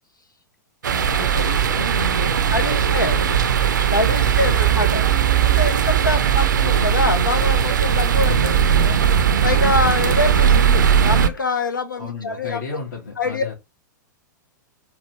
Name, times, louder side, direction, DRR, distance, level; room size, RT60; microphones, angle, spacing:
sound 1, 0.8-11.3, right 8 dB, 70° right, 0.5 m, -18 dB
voice 1, 1.1-3.7 4.2-4.8 6.1-6.5 8.2-8.8 12.0-13.5, left 4 dB, 60° left, 1.8 m, -33 dB
voice 2, 2.5-3.2 3.8-5.0 5.5-9.0 9.4-12.6 13.2-13.4, left 3 dB, 85° left, 1.1 m, -25 dB
sound 2, 5.1-9.0, equal, 25° left, 1.7 m, -45 dB
4.6 x 2.5 x 4.5 m
figure-of-eight pair, 100°, 10 cm